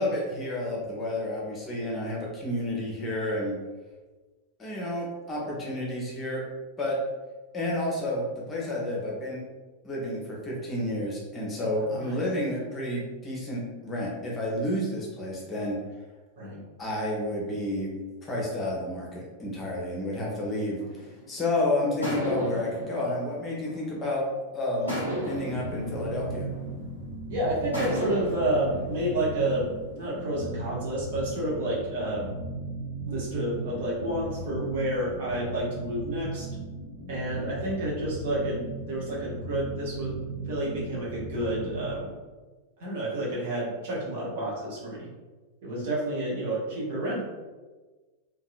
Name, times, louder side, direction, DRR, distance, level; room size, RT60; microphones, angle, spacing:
voice 1, 0.0-3.5 4.6-6.4 6.8-7.0 7.5-9.4 9.8-15.8 16.8-17.9 18.2-24.3 24.5-26.5, left 1 dB, 20° left, -4 dB, 0.7 m, -30 dB
sound 1, 20.8-21.4 22.0-24.3 24.9-27.1 27.7-30.0, right 1 dB, 80° right, 1.1 m, -35 dB
sound 2, 24.9-42.0, right 2 dB, 60° left, 0.5 m, -37 dB
voice 2, 27.3-32.3 33.1-36.5 37.1-38.6 38.9-40.1 40.5-42.1 42.8-45.1 45.6-47.2, right 1 dB, 55° right, -6 dB, 0.9 m, -30 dB
2.7 x 2.2 x 2.5 m, 1.3 s
figure-of-eight pair, 90°, 0 cm